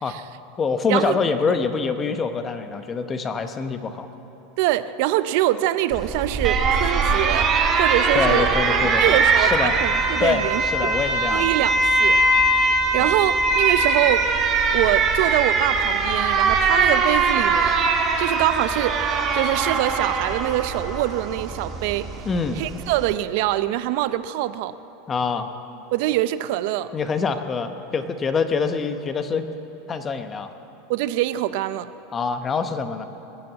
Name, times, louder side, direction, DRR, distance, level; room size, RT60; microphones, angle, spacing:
voice 1, 0.6-4.1 8.1-9.8 10.2-11.5 13.0-13.1 22.2-22.6 25.1-25.5 26.9-29.5 29.9-30.5 32.1-33.0, left 5 dB, 25° left, 9 dB, 0.9 m, -25 dB
voice 2, 4.6-7.5 7.8-8.5 9.0-10.9 11.3-12.2 12.5-14.3 14.7-17.8 18.2-19.0 19.3-22.1 22.6-24.7 25.9-26.9 30.9-31.9, right 14 dB, 60° right, 13 dB, 0.6 m, -24 dB
Alarm, 5.9-23.1, right 3 dB, 30° right, 1.5 m, -21 dB
21.5 x 7.6 x 7.5 m, 3.0 s
supercardioid pair, 130°, 0 cm